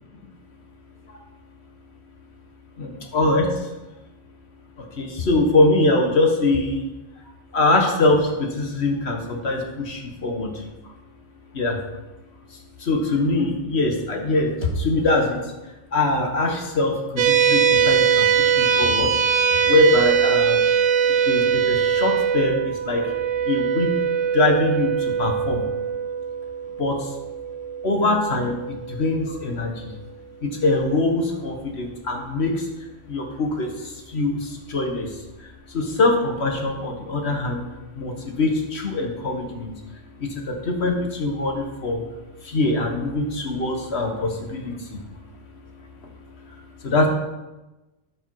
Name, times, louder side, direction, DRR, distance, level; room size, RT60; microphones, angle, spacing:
voice 1, 2.8-3.7 4.8-6.8 7.5-10.9 11.5-11.8 12.5-15.4 15.9-19.1 19.5-20.6 21.2-23.1 23.4-23.9 24.3-25.6 26.8-27.1 27.8-29.9 30.4-32.7 33.0-37.6 38.0-39.7 40.2-42.0 42.4-45.0 46.5-47.1, left 2 dB, 65° left, 2 dB, 1.7 m, -23 dB
sound 1, 17.2-29.8, right 7 dB, 80° right, 1.1 m, -22 dB
13.0 x 5.4 x 4.7 m, 1.1 s
omnidirectional pair, 1.2 m